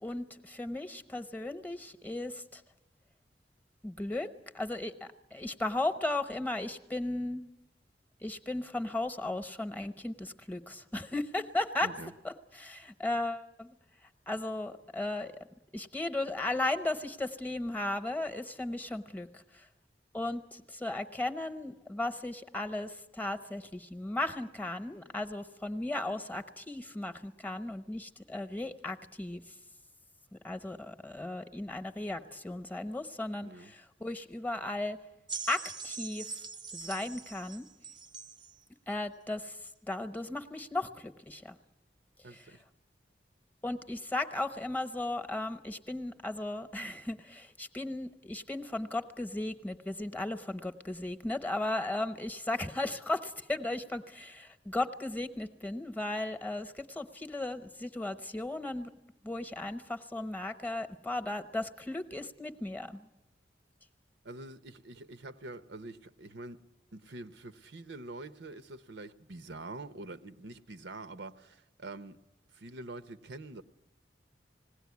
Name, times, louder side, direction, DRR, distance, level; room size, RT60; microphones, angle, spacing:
voice 1, 0.0-2.6 3.8-4.3 4.5-7.5 8.2-11.9 12.2-13.7 14.3-15.3 15.7-19.7 20.1-29.4 30.3-35.0 35.5-36.3 36.7-37.6 38.9-39.6 39.9-41.6 42.3-42.4 43.6-58.9 59.2-63.1, left 2 dB, 10° left, 0.9 m, -36 dB
voice 2, 11.8-12.1 33.4-33.7 42.2-42.6 64.2-66.6 66.9-72.2 72.5-73.6, right 2 dB, 80° right, 0.8 m, -45 dB
sound 1, 35.3-38.6 39.4-39.5, right 5 dB, 25° right, 0.7 m, -42 dB
20.0 x 17.0 x 9.5 m
head